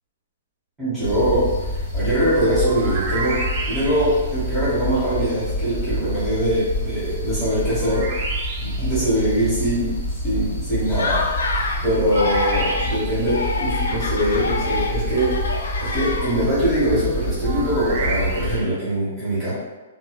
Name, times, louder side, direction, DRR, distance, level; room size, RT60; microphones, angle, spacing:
voice 1, 0.8-8.3 8.6-10.0 10.2-11.4 11.8-15.4 15.8-19.5, right 1 dB, 5° right, -13 dB, 1.0 m, -22 dB
sound 1, 1.0-18.6, left 1 dB, 20° left, 0.9 m, -28 dB
sound 2, 2.6-4.3 7.8-9.0 12.1-13.3 17.4-18.8, right 3 dB, 35° right, 0.4 m, -30 dB
Laughter, 10.9-11.8 12.1-13.0 13.3-16.6, left 3 dB, 85° left, 0.4 m, -26 dB
2.6 x 2.0 x 2.4 m, 1.2 s
hypercardioid pair, 165°, 0 cm